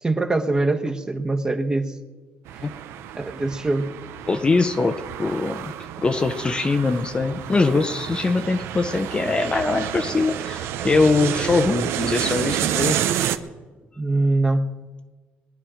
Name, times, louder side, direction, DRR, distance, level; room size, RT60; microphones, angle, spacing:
voice 1, 0.0-1.9 3.2-3.9 14.0-14.7, right 2 dB, 15° right, 6 dB, 1.2 m, -23 dB
sound 1, 2.5-13.4, right 11 dB, 80° right, 0.8 m, -29 dB
voice 2, 4.3-5.7 6.0-13.0, left 3 dB, 20° left, 7 dB, 0.8 m, -22 dB
21.5 x 10.5 x 5.0 m, 1.3 s
cardioid pair, 120°, 4 cm